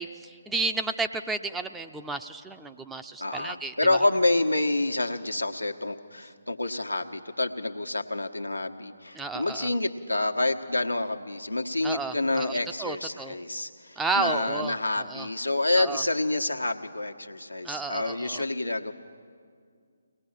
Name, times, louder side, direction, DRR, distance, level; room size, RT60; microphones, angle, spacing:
voice 1, 0.0-4.0 9.1-9.7 11.8-13.4 14.0-15.3 15.8-16.0 17.6-18.4, right 3 dB, 5° right, 7 dB, 0.5 m, -32 dB
voice 2, 3.2-18.9, left 2 dB, 90° left, 3 dB, 1.3 m, -28 dB
23.5 x 19.0 x 7.4 m, 2.2 s
figure-of-eight pair, 140°, 0 cm